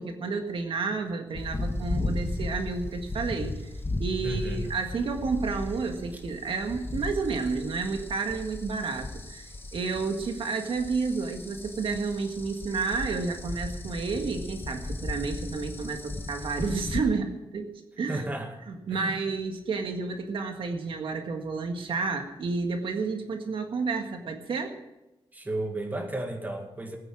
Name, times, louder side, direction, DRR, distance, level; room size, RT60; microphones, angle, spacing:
voice 1, 0.0-3.7 4.0-17.7 18.0-18.2 18.7-24.8, right 4 dB, 70° right, 4 dB, 1.7 m, -31 dB
sound 1, 1.3-17.0, left 2 dB, 25° left, 1.6 m, -36 dB
voice 2, 4.2-4.7 18.1-18.5 18.9-19.1 25.3-27.0, right 2 dB, 20° right, 3 dB, 2.1 m, -33 dB
19.5 x 9.6 x 6.1 m, 0.96 s
wide cardioid pair, 155°, 9 cm